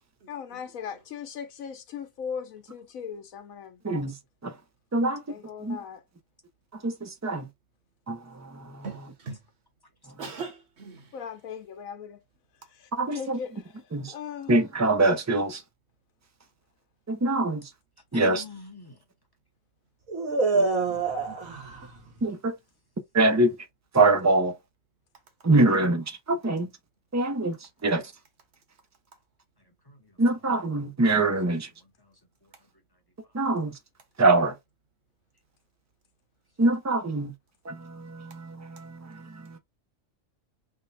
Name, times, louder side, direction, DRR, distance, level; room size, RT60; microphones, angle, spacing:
voice 1, 0.3-3.8 5.3-6.0 11.1-12.2 12.5-14.5, left 7 dB, 90° left, 1.2 m, -39 dB
voice 2, 3.8-4.2 4.4-4.6 4.9-5.2 5.6-5.8 6.7-7.5 8.1-9.1 10.1-10.2 12.9-13.4 13.9-14.1 14.5-15.6 17.1-17.7 18.1-18.4 22.2-22.5 23.1-23.6 23.9-24.6 25.4-26.7 27.1-28.1 30.2-31.7 33.3-33.8 34.2-34.6 36.6-37.3 37.6-39.6, right 2 dB, 20° right, 0.4 m, -24 dB
voice 3, 8.8-9.4 10.2-11.1, right 4 dB, 55° right, 1.2 m, -39 dB
voice 4, 18.1-19.0 20.9-21.0 29.6-30.2 32.0-32.5, left 6 dB, 20° left, 0.8 m, -46 dB
voice 5, 20.1-22.1, right 3 dB, 80° right, 1.7 m, -27 dB
3.6 x 2.2 x 4.0 m
omnidirectional pair, 1.4 m